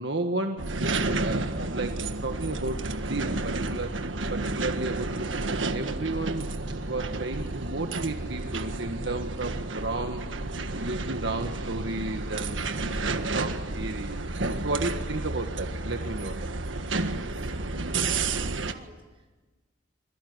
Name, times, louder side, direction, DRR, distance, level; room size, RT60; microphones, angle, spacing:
voice 1, 0.0-4.0 4.3-14.2 14.6-16.5, right 2 dB, 65° right, 5 dB, 1.6 m, -33 dB
sound 1, 0.6-18.7, right 2 dB, 85° right, 1.6 m, -31 dB
voice 2, 17.2-19.5, right 1 dB, 30° right, 4 dB, 5.3 m, -52 dB
26.0 x 22.5 x 9.7 m, 1.2 s
head